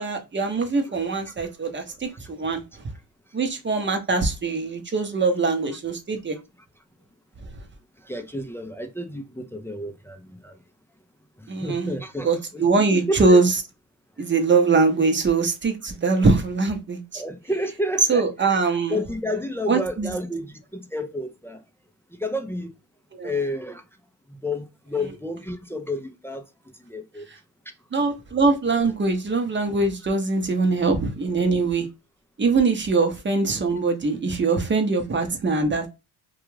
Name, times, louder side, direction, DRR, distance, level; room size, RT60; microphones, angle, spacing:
voice 1, 0.0-2.6 3.3-6.4 11.5-11.9 12.2-13.5 14.2-17.2 18.1-19.0 19.7-20.1 23.1-23.3 27.9-31.9 32.4-35.9, right 3 dB, 25° right, 0.7 m, -22 dB
voice 2, 8.1-10.5 11.6-12.6 12.9-13.4 17.2-18.6 18.9-21.6 22.2-22.7 23.2-23.8 24.4-26.4 26.9-27.2, left 1 dB, 5° left, 0.4 m, -30 dB
2.4 x 2.3 x 3.0 m
supercardioid pair, 80°, 49 cm